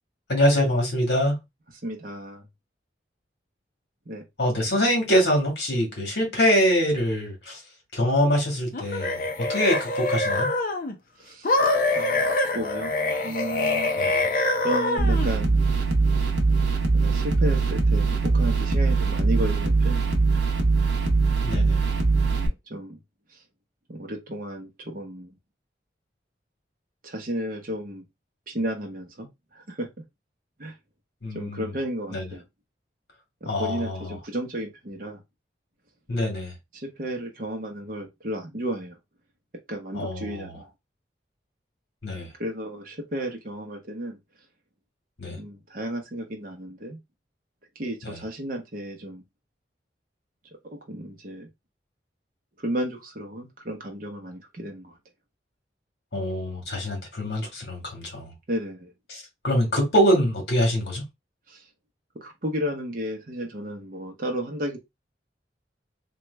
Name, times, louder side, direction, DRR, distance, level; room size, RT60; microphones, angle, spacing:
voice 1, 0.3-1.4 4.4-7.6 7.9-9.2 9.5-10.5 14.0-14.3 21.4-21.9 31.2-31.7 32.1-32.3 33.4-34.1 36.1-36.5 39.9-40.6 42.0-42.3 45.2-45.4 48.0-48.2 56.1-58.3 59.1-61.0, equal, 65° left, 1.6 m, -24 dB
voice 2, 1.8-2.5 4.1-4.2 11.2-11.5 11.9-12.3 12.5-12.9 13.2-13.9 14.6-15.8 17.0-20.5 22.3-23.0 23.3-23.4 23.9-25.3 27.0-28.1 28.5-29.9 30.6-30.7 31.3-32.4 33.4-35.2 36.7-39.0 39.7-40.7 42.1-44.2 45.3-47.0 47.8-49.2 50.9-51.5 52.6-55.0 58.5-58.9 61.5-61.6 62.1-64.8, right 1 dB, 50° right, 0.7 m, -33 dB
sound 1, 8.7-10.9 11.4-15.3, left 2 dB, 50° left, 0.6 m, -25 dB
sound 2, 15.0-22.5, right 4 dB, 80° right, 0.8 m, -22 dB
3.0 x 2.3 x 3.2 m
head